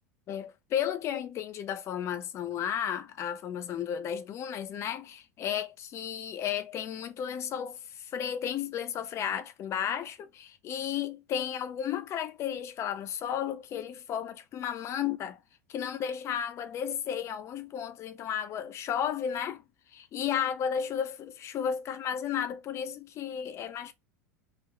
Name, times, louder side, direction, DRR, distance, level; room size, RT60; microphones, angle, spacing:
voice 1, 0.3-15.4 15.7-19.6 19.9-23.9, left 9 dB, 35° left, 0.5 m, -33 dB
2.6 x 2.1 x 3.6 m
figure-of-eight pair, 80°, 9 cm